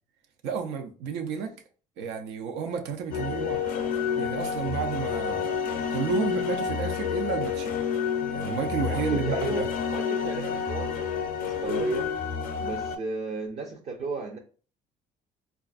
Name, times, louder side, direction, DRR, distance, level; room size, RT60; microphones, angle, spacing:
voice 1, 0.4-1.5 2.0-3.6 4.2-5.5 5.9-7.8 8.3-9.7, right 6 dB, 90° right, 0.5 m, -31 dB
sound 1, 3.1-13.0, left 7 dB, 55° left, 0.5 m, -29 dB
voice 2, 8.9-12.1 12.6-14.4, right 4 dB, 40° right, 0.5 m, -35 dB
4.0 x 2.4 x 2.4 m
cardioid pair, 110°, 17 cm